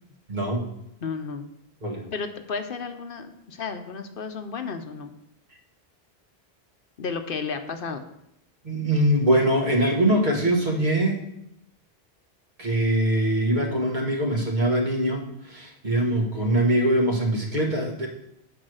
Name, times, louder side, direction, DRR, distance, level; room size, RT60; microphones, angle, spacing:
voice 1, 0.3-0.7 1.8-2.0 8.6-11.2 12.6-18.1, right 1 dB, 50° right, 0 dB, 1.7 m, -23 dB
voice 2, 1.0-1.5 2.1-5.1 7.0-8.0, left 5 dB, 65° left, 7 dB, 0.9 m, -33 dB
8.7 x 4.8 x 6.3 m, 0.81 s
omnidirectional pair, 1.0 m